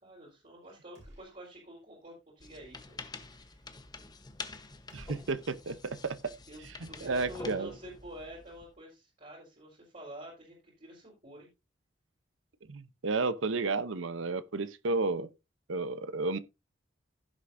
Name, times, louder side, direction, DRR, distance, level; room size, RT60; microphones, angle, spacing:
voice 1, 0.0-3.8 6.5-11.5, right 1 dB, 40° right, 4.1 m, -49 dB
sound 1, 1.0-1.8 2.1-2.2 4.9-6.2, right 1 dB, 65° right, 6.2 m, -56 dB
sound 2, 2.4-8.7, left 3 dB, 20° left, 0.9 m, -47 dB
voice 2, 4.9-6.3 7.0-7.7 12.7-15.3 15.7-16.4, right 3 dB, 90° right, 0.8 m, -32 dB
16.0 x 6.9 x 2.6 m
head